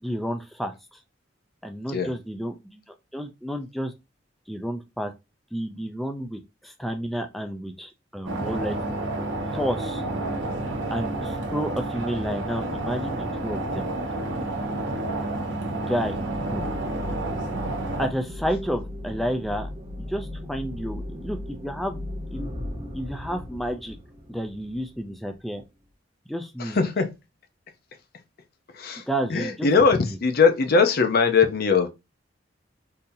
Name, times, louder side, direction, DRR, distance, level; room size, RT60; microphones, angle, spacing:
voice 1, 0.0-1.0 1.6-3.9 4.5-5.1 5.5-8.9 9.4-10.0 10.9-13.9 15.7-16.2 16.5-16.7 18.0-19.7 20.0-22.0 22.3-22.4 22.9-24.0 24.3-25.6 26.3-26.8 29.1-29.7 30.0-30.2, equal, ahead, 0.3 m, -31 dB
sound 1, 8.3-18.1, right 2 dB, 75° right, 0.8 m, -30 dB
sound 2, 16.1-25.4, left 1 dB, 30° right, 0.6 m, -37 dB
voice 2, 26.6-27.1 28.8-29.0 29.3-31.9, left 5 dB, 55° left, 0.6 m, -20 dB
3.8 x 2.7 x 2.6 m
head